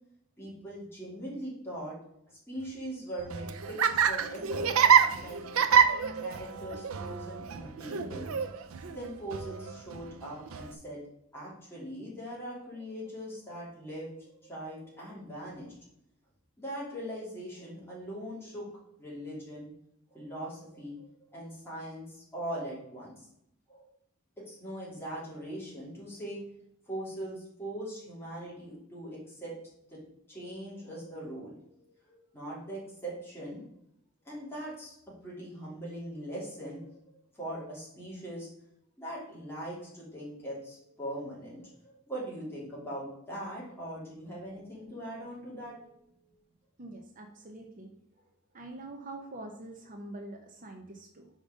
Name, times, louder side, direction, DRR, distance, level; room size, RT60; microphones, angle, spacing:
voice 1, 0.4-2.0 2.3-4.7 5.2-5.4 6.2-8.4 8.9-11.0 11.3-15.8 16.6-18.7 19.0-19.7 20.1-21.0 21.3-23.3 23.7-23.9 24.5-26.4 26.9-29.6 29.9-30.0 30.3-31.7 32.1-33.6 34.2-35.0 35.2-38.5 39.0-46.3, right 1 dB, 10° left, -6 dB, 3.0 m, -41 dB
Laughter, 3.2-10.7, right 7 dB, 75° right, 0.5 m, -27 dB
voice 2, 46.8-47.9 48.5-51.3, right 2 dB, 40° right, 3 dB, 0.7 m, -44 dB
5.1 x 5.1 x 5.2 m, 0.76 s
head